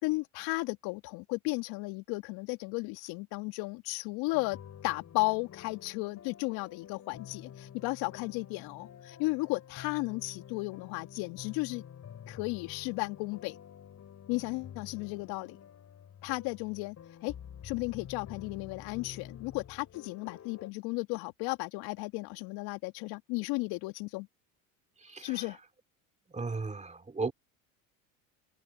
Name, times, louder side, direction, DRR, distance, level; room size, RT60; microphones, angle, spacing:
voice 1, 0.0-4.6 4.8-11.8 12.3-13.6 14.3-15.6 16.2-17.0 17.2-17.3 17.6-24.3 25.2-25.6, left 25 dB, 65° left, 1.8 m, -34 dB
sound 1, 4.3-20.7, left 9 dB, 40° left, 7.4 m, -49 dB
voice 2, 26.3-27.3, right 3 dB, 15° right, 2.8 m, -34 dB
hypercardioid pair, 75°, 41 cm